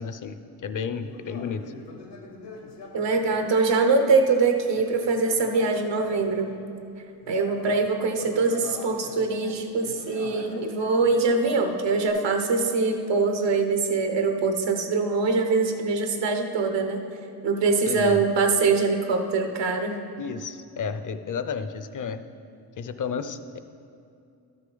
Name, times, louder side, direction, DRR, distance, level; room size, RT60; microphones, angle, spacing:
voice 1, 0.0-1.7 17.9-18.2 20.2-22.2 22.8-23.6, left 6 dB, 45° left, 11 dB, 0.6 m, -32 dB
Conversation, 1.0-6.7 7.2-12.1, left 3 dB, 75° left, 1.2 m, -43 dB
voice 2, 2.9-6.5 7.3-17.0 17.4-20.0, right 4 dB, 85° right, 5 dB, 1.0 m, -23 dB
12.5 x 6.6 x 3.9 m, 2.5 s
cardioid pair, 65°, 42 cm